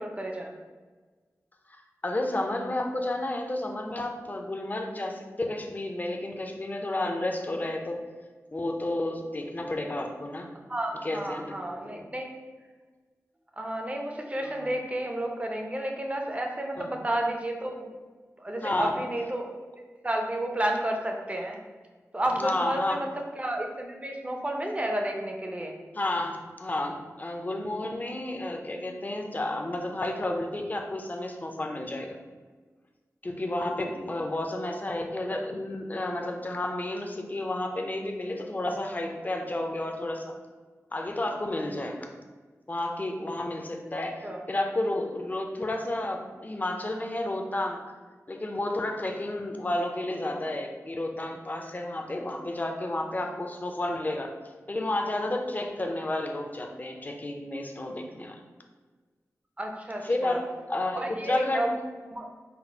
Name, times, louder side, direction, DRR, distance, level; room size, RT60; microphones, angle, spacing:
voice 1, 0.0-0.5 10.7-12.3 13.6-17.9 18.4-19.6 20.0-21.6 22.1-23.1 23.4-25.7 44.2-44.4 59.6-60.4 60.9-61.7 62.1-62.3, right 1 dB, 25° right, 2 dB, 0.6 m, -31 dB
voice 2, 2.0-8.0 8.5-10.5 11.0-11.6 11.8-12.1 14.4-14.7 16.8-17.0 18.6-18.9 22.4-23.1 25.9-32.2 33.2-40.3 40.9-42.1 42.7-47.8 48.3-54.3 54.7-58.4 60.0-60.4 60.7-61.8, left 1 dB, 30° left, 3 dB, 0.5 m, -31 dB
4.1 x 2.0 x 4.4 m, 1.4 s
wide cardioid pair, 75°, 6 cm